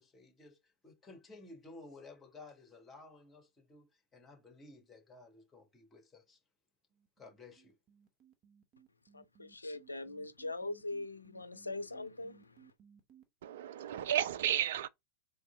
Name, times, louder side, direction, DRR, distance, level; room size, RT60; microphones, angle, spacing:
voice 1, 0.0-6.4 7.2-7.8, left 3 dB, 15° left, 1.6 m, -55 dB
sound 1, 6.9-13.2, right 8 dB, 35° right, 1.1 m, -62 dB
voice 2, 9.1-12.5, left 2 dB, 80° left, 0.4 m, -42 dB
voice 3, 13.4-14.9, right 10 dB, 60° right, 0.3 m, -33 dB
3.6 x 3.1 x 3.8 m
figure-of-eight pair, 90°, 0 cm